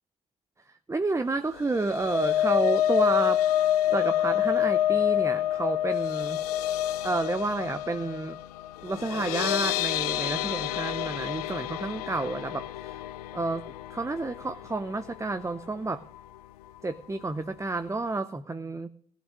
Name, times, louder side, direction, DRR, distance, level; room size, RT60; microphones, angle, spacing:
voice 1, 0.9-6.4 7.0-8.4 8.8-13.0 13.3-13.6 13.9-16.0 16.8-18.9, right 3 dB, 15° right, 11 dB, 0.7 m, -30 dB
sound 1, 1.6-15.8 16.1-16.4 16.7-16.8, left 12 dB, 85° left, 0.5 m, -28 dB
15.5 x 6.1 x 8.2 m, 0.63 s
hypercardioid pair, 55°, 19 cm